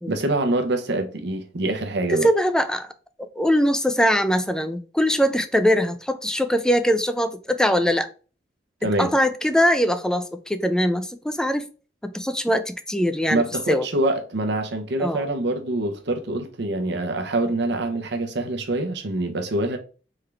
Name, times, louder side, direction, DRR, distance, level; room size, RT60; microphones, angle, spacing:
voice 1, 0.1-2.3 8.8-9.1 13.3-19.8, right 2 dB, 70° right, 0.8 m, -25 dB
voice 2, 2.1-2.9 3.2-8.1 9.0-11.6 12.0-13.9 15.0-15.3, equal, 5° left, 0.4 m, -22 dB
3.7 x 3.4 x 3.3 m
head